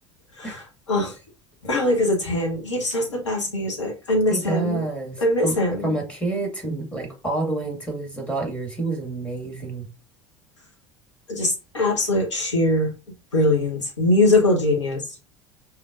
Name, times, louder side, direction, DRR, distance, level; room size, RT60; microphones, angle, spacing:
voice 1, 1.6-4.8 5.2-5.9 11.3-12.9 13.3-15.0, left 1 dB, 80° left, 0 dB, 1.1 m, -22 dB
voice 2, 4.3-5.6 5.8-9.9, right 2 dB, 10° left, 0 dB, 1.9 m, -28 dB
5.1 x 3.0 x 2.4 m, 0.30 s
figure-of-eight pair, 70°, 15 cm